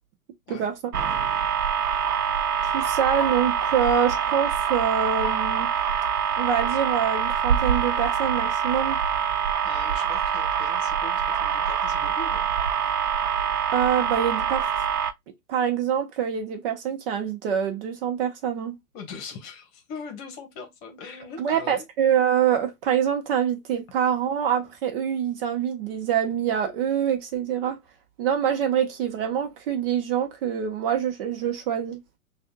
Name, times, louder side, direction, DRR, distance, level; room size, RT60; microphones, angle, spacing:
sound 1, 0.9-15.1, right 7 dB, 80° right, 0.8 m, -25 dB
voice 1, 2.6-5.7 6.4-9.0 13.7-14.7 15.5-18.8 21.4-27.8 28.2-32.0, right 8 dB, 40° right, 1.1 m, -25 dB
voice 2, 9.6-12.5 18.9-21.8, left 5 dB, 30° left, 1.4 m, -41 dB
6.1 x 2.6 x 2.3 m
hypercardioid pair, 125°, 45 cm